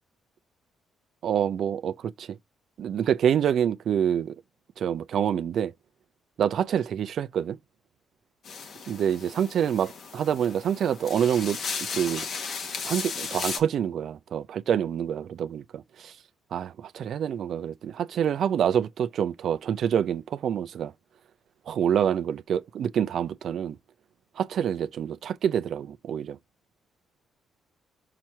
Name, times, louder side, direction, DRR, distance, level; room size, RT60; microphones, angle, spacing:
voice 1, 1.2-2.4 2.8-4.3 4.8-5.7 6.4-7.6 8.9-11.6 11.9-12.3 12.9-16.1 16.5-20.9 21.7-23.8 24.4-26.4, right 9 dB, 65° right, 0.6 m, -27 dB
sound 1, 8.4-13.6, left 5 dB, 60° left, 1.4 m, -35 dB
6.0 x 4.5 x 4.4 m
cardioid pair, 90°, 0 cm